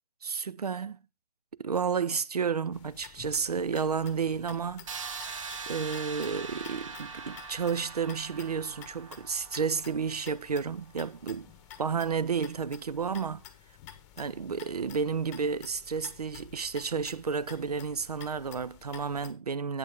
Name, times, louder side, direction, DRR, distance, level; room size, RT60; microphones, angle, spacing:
voice 1, 0.2-1.0 1.6-4.9 5.7-11.5 11.8-13.4 14.2-19.8, right 6 dB, 85° right, 0.5 m, -31 dB
sound 1, 2.7-19.3, left 10 dB, 25° left, 0.9 m, -51 dB
sound 2, 4.9-10.7, right 5 dB, 55° right, 1.0 m, -42 dB
8.9 x 8.1 x 3.5 m
figure-of-eight pair, 125°, 19 cm